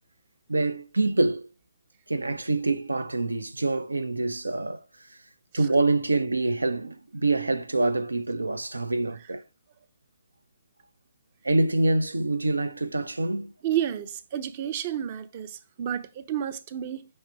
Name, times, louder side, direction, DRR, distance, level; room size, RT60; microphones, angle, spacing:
voice 1, 0.5-1.5 2.1-4.8 5.5-9.4 11.4-13.5, right 2 dB, 75° right, 0.7 m, -26 dB
voice 2, 13.6-17.1, right 10 dB, 30° right, 0.6 m, -31 dB
5.6 x 3.3 x 5.6 m
figure-of-eight pair, 135°, 0 cm